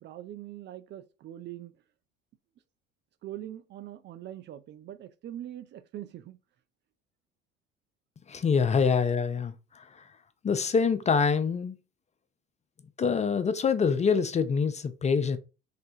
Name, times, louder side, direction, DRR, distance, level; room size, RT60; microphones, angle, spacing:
voice 1, 0.0-1.7 3.2-6.4, right 12 dB, 40° right, 0.4 m, -42 dB
voice 2, 8.3-10.1 10.4-11.8 13.0-15.4, left 5 dB, 25° left, 0.4 m, -25 dB
3.4 x 3.3 x 2.7 m
hypercardioid pair, 65°, 29 cm